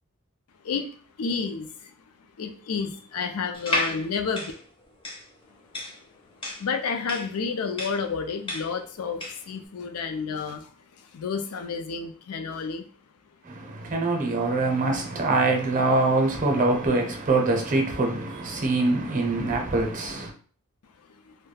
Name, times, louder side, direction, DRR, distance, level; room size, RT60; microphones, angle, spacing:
voice 1, 1.2-1.9 2.4-4.5 6.6-10.7 11.0-12.8 21.1-21.3, left 5 dB, 80° left, 0.4 m, -30 dB
sound 1, 3.5-9.5, left 1 dB, 25° left, 0.5 m, -33 dB
voice 2, 13.4-20.3, right 2 dB, 35° right, 0.6 m, -24 dB
2.2 x 2.1 x 3.2 m
head